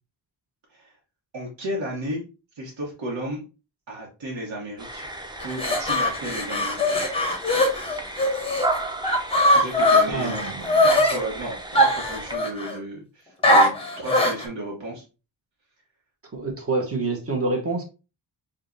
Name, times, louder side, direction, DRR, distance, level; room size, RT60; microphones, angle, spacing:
voice 1, 1.3-2.2 2.6-3.4 3.9-5.1 5.4-7.0 9.5-10.3 10.8-15.0, right 1 dB, 70° right, -3 dB, 1.2 m, -33 dB
sound 1, 4.8-12.4, right 2 dB, 10° right, 0.5 m, -34 dB
sound 2, 5.4-8.7 9.0-11.2 11.7-12.8 13.4-14.4, left 1 dB, 10° left, 0.9 m, -20 dB
voice 2, 10.1-10.8 16.3-17.8, right 3 dB, 30° right, 2 dB, 1.1 m, -27 dB
4.8 x 2.5 x 2.6 m, 0.31 s
wide cardioid pair, 105°, 45 cm